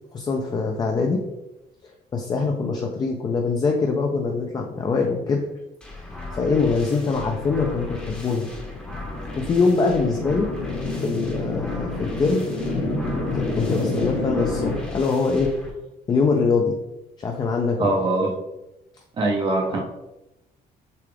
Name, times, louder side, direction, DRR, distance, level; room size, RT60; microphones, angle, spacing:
voice 1, 0.1-1.2 2.1-5.4 6.1-8.5 9.4-10.5 10.9-12.5 13.3-15.5 16.1-16.8 17.2-17.9 19.7-19.8, left 4 dB, 25° left, 2 dB, 0.4 m, -23 dB
sound 1, 5.8-15.7, left 2 dB, 5° left, 0.8 m, -37 dB
sound 2, 7.2-14.7, left 2 dB, 60° left, 1.2 m, -29 dB
voice 2, 17.8-18.3 19.2-19.8, right 2 dB, 30° right, 0 dB, 0.5 m, -22 dB
6.7 x 2.4 x 3.3 m, 0.95 s
cardioid pair, 170°, 17 cm